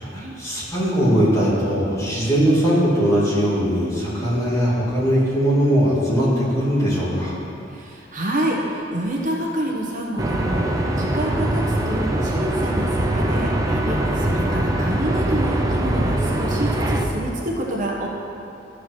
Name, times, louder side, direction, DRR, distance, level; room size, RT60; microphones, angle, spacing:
voice 1, 0.0-7.3, equal, 20° left, -8 dB, 2.7 m, -20 dB
voice 2, 7.7-18.1, right 1 dB, 45° right, -2 dB, 1.2 m, -27 dB
sound 1, 10.2-17.1, right 1 dB, 20° right, 0.7 m, -22 dB
14.0 x 4.8 x 6.2 m, 2.7 s
head